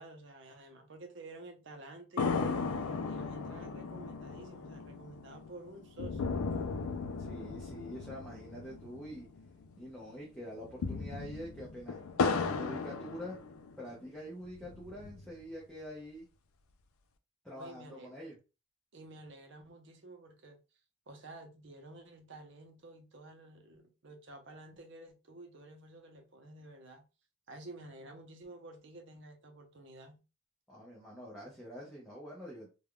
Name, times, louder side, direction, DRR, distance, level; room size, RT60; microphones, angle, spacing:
voice 1, 0.0-2.7 3.1-6.3 17.5-18.1 18.9-20.6 21.1-27.0 27.5-30.2, right 2 dB, 55° right, 0.6 m, -51 dB
sound 1, 2.2-9.8 10.0-10.1 10.6-13.9 14.4-15.4, left 4 dB, 80° left, 0.4 m, -36 dB
voice 2, 7.2-9.3 9.8-13.4 13.8-16.3 17.4-18.4 30.7-32.7, equal, 5° left, 0.6 m, -46 dB
3.3 x 2.3 x 2.2 m
head